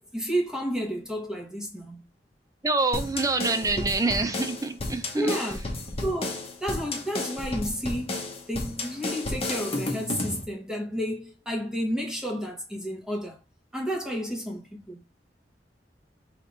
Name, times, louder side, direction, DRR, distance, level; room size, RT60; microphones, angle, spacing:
voice 1, 0.1-2.0 5.2-5.6 6.0-8.2 8.5-13.4 13.7-15.0, equal, 5° right, 1.2 m, -31 dB
voice 2, 2.6-5.5, right 3 dB, 20° right, 0.6 m, -26 dB
sound 1, 2.9-10.4, left 2 dB, 35° left, 0.9 m, -32 dB
3.4 x 3.3 x 4.0 m
head